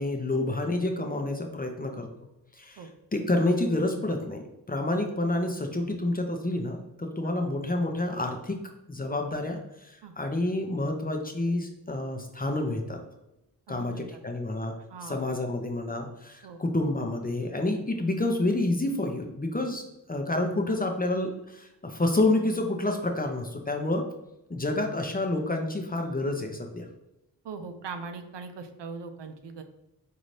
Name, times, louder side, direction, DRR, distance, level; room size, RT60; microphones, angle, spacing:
voice 1, 0.0-2.1 2.5-2.8 3.1-8.6 8.9-13.0 13.7-14.8 15.1-24.1 24.5-26.9, left 2 dB, 20° left, 3 dB, 0.6 m, -29 dB
voice 2, 13.7-14.2 14.9-15.2 16.4-16.6 27.4-29.6, right 5 dB, 75° right, 7 dB, 0.6 m, -40 dB
3.9 x 2.7 x 3.2 m, 0.91 s
cardioid pair, 40°, 43 cm